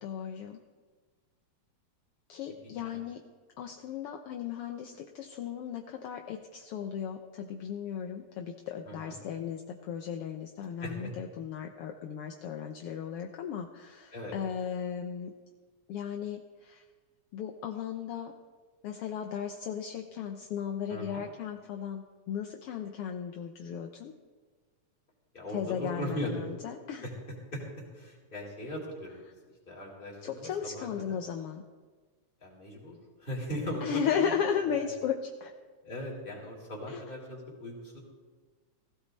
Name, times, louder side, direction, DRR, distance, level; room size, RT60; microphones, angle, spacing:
voice 1, 0.0-0.6 2.3-3.2 3.6-15.3 15.9-16.8 17.3-18.3 18.8-24.1 25.5-27.0 30.2-31.6 33.8-35.5 36.9-37.0, left 8 dB, 70° left, 3 dB, 1.5 m, -36 dB
voice 2, 2.6-3.0 8.9-9.2 10.8-11.1 14.1-14.4 20.9-21.2 25.3-26.5 27.0-27.1 27.5-29.2 29.7-31.2 32.4-32.9 33.2-34.3 34.8-34.9 35.8-38.0, equal, 15° left, -4 dB, 3.6 m, -39 dB
17.0 x 16.0 x 4.1 m, 1.4 s
omnidirectional pair, 3.4 m